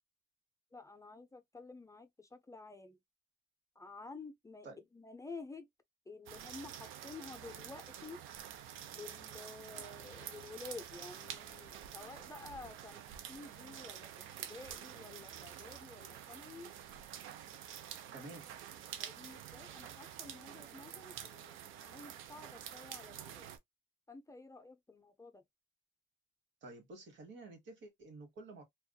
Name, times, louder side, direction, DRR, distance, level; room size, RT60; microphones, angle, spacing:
voice 1, 0.7-3.0 3.8-4.7 4.9-5.7 6.1-8.2 8.9-14.1 14.4-16.7 18.1-18.3 19.0-23.5 24.1-25.4, left 3 dB, 15° left, 0.4 m, -51 dB
sound 1, 6.3-23.6, right 10 dB, 85° right, 0.5 m, -48 dB
voice 2, 18.1-18.4 26.6-28.6, right 2 dB, 70° right, 1.2 m, -50 dB
2.6 x 2.3 x 2.2 m
cardioid pair, 90°, 20 cm